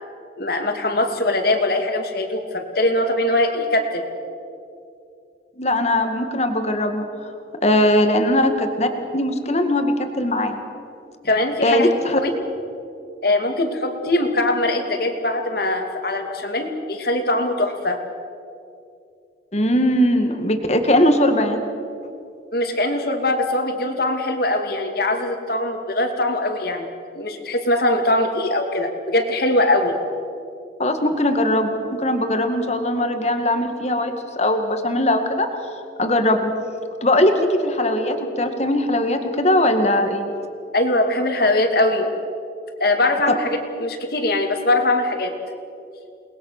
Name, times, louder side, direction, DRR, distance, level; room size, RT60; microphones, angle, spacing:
voice 1, 0.4-4.0 11.2-11.9 12.2-12.3 13.2-18.0 22.5-30.0 40.7-42.1 42.8-45.3, left 1 dB, 55° left, 5 dB, 2.6 m, -21 dB
voice 2, 5.6-7.3 7.6-10.6 11.6-12.2 19.5-21.6 30.8-35.5 36.0-36.5 37.0-40.3, left 1 dB, 35° left, 6 dB, 2.0 m, -20 dB
29.0 x 20.5 x 6.7 m, 2.6 s
head